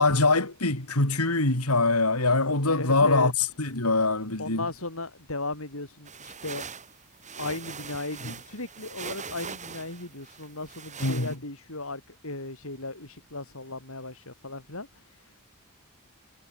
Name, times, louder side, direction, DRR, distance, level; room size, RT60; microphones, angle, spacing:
voice 1, 0.0-3.3 3.6-4.6 8.2-8.3 11.0-11.3, left 3 dB, 85° left, 4.4 m, -23 dB
voice 2, 2.7-3.3 4.4-6.7 7.4-15.3, left 2 dB, 65° left, 7.1 m, -36 dB
sound 1, 6.1-11.4, right 5 dB, 35° right, 7.6 m, -41 dB
head